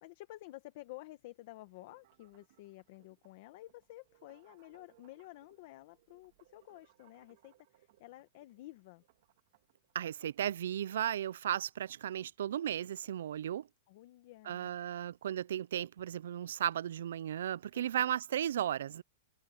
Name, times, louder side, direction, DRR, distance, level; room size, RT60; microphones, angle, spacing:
voice 1, 0.0-9.0 13.9-14.7 17.7-18.1, left 18 dB, 35° left, 1.0 m, -52 dB
sound 1, 1.6-11.2, right 16 dB, 40° right, 2.4 m, -69 dB
voice 2, 9.9-13.7 14.5-19.0, right 10 dB, 65° right, 0.4 m, -35 dB
supercardioid pair, 180°, 0 cm